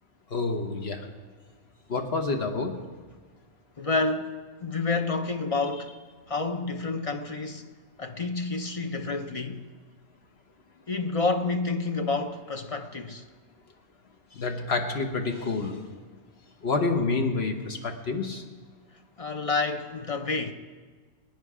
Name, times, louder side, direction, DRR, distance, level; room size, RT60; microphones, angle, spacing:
voice 1, 0.3-1.0 1.9-2.8 14.4-15.8 16.6-18.4, left 3 dB, 60° left, 1.3 m, -28 dB
voice 2, 3.8-4.3 4.6-5.9 6.3-7.7 8.0-9.6 10.9-13.2 19.2-20.5, left 3 dB, 40° left, 0.6 m, -29 dB
19.5 x 9.3 x 4.9 m
omnidirectional pair, 1.3 m